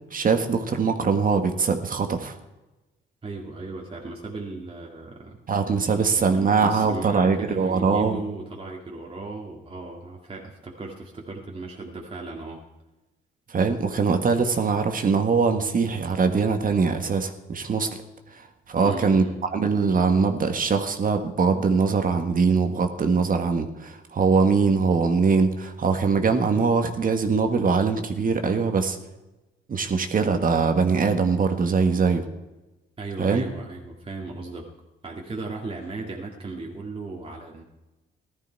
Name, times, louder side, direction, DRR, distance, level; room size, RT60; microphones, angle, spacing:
voice 1, 0.1-2.3 5.5-8.2 13.5-17.9 18.7-19.2 19.5-29.0 29.7-32.2 33.2-33.4, right 5 dB, 45° right, 7 dB, 1.6 m, -22 dB
voice 2, 3.2-5.4 5.9-12.6 18.8-19.4 33.0-34.7 35.0-37.6, right 3 dB, 25° right, -1 dB, 2.1 m, -36 dB
15.5 x 12.5 x 4.6 m, 1.0 s
cardioid pair, 90°, 20 cm